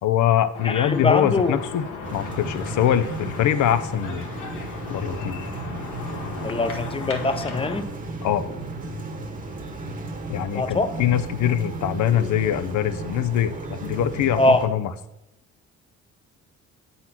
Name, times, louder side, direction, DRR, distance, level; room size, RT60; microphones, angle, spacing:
voice 1, 0.0-1.8 2.1-4.3 4.9-5.4 8.2-8.4 10.3-14.9, left 10 dB, 75° left, 12 dB, 0.6 m, -23 dB
sound 1, 0.5-7.8, left 4 dB, 90° left, 1.3 m, -36 dB
voice 2, 0.6-1.6 6.4-7.9 10.5-10.9 14.4-14.6, left 2 dB, 20° left, 9 dB, 0.7 m, -22 dB
sound 2, 2.0-14.7, right 2 dB, 25° right, 1.2 m, -34 dB
7.6 x 4.0 x 5.7 m, 0.93 s
cardioid pair, 90°, 30 cm